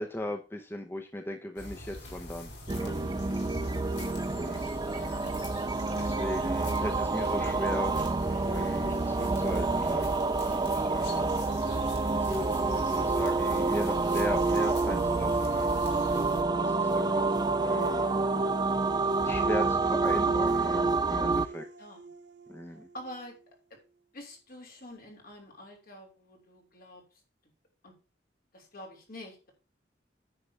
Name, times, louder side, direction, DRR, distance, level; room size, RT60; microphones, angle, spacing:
voice 1, 0.0-2.9 4.3-5.3 5.9-10.1 10.5-11.3 12.2-15.8 16.6-18.1 19.2-21.7 22.5-22.9, left 1 dB, 15° left, 3 dB, 0.9 m, -38 dB
sound 1, 1.6-16.4, left 1 dB, 75° left, 3.5 m, -41 dB
sound 2, 2.7-21.5, right 3 dB, 25° right, 0.5 m, -28 dB
sound 3, 10.5-23.4, right 4 dB, 70° right, 0.8 m, -41 dB
voice 2, 16.8-17.3 21.8-22.1 22.9-23.4 23.7-23.8 24.1-27.0 27.8-27.9 28.5-29.5, left 1 dB, 55° left, 1 dB, 3.3 m, -47 dB
9.8 x 3.8 x 7.0 m, 0.33 s
head